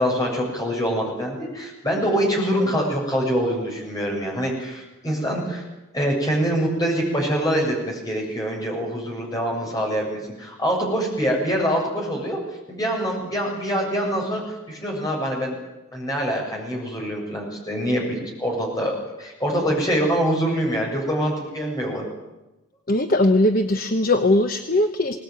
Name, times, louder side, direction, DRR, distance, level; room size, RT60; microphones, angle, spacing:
voice 1, 0.0-5.6 5.9-12.4 12.7-15.6 15.9-22.1, equal, 15° left, -1 dB, 7.4 m, -24 dB
voice 2, 22.9-25.2, left 1 dB, 40° left, 6 dB, 1.0 m, -19 dB
22.0 x 19.0 x 9.1 m, 1.0 s
head